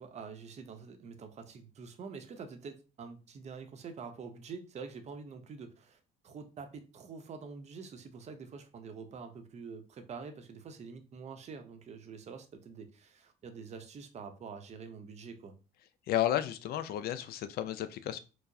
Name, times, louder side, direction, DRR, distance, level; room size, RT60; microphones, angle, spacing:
voice 1, 0.0-15.6, right 5 dB, 40° right, 0.6 m, -46 dB
voice 2, 16.1-18.2, left 12 dB, 65° left, 0.4 m, -32 dB
4.6 x 2.0 x 2.6 m
cardioid pair, 110°, 17 cm